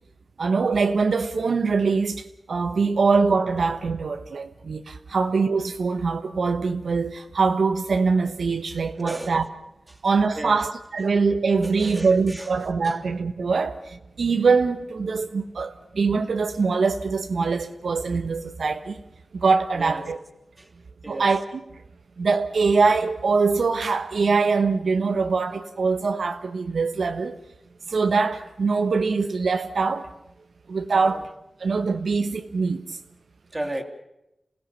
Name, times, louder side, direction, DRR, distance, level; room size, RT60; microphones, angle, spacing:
voice 1, 0.4-9.5 10.0-19.0 19.3-20.2 21.1-21.4 22.2-27.4 27.9-30.1 30.7-31.3 31.6-33.0, right 4 dB, 80° right, 1.2 m, -23 dB
voice 2, 8.9-9.3 9.9-10.0 10.3-10.7 11.6-12.5 12.8-13.0 19.8-20.1 20.6-20.7 21.0-21.3 30.9-31.2 33.5-33.8, right 1 dB, 20° right, 3.2 m, -35 dB
28.0 x 17.0 x 7.0 m
wide cardioid pair, 85°, 0 cm